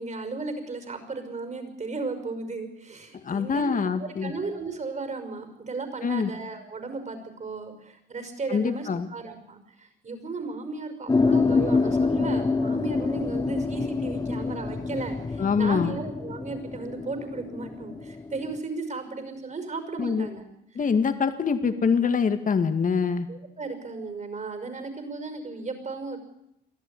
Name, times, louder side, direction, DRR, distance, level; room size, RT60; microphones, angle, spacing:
voice 1, 0.0-20.4 23.3-26.2, right 3 dB, 35° right, 7 dB, 5.6 m, -35 dB
voice 2, 3.2-4.3 6.0-6.3 8.5-9.1 15.4-16.0 20.0-20.3 20.8-23.3, left 6 dB, 40° left, 8 dB, 2.2 m, -24 dB
sound 1, 11.1-18.6, left 4 dB, 20° left, 1.2 m, -26 dB
23.0 x 14.0 x 9.9 m, 0.80 s
cardioid pair, 90°, 20 cm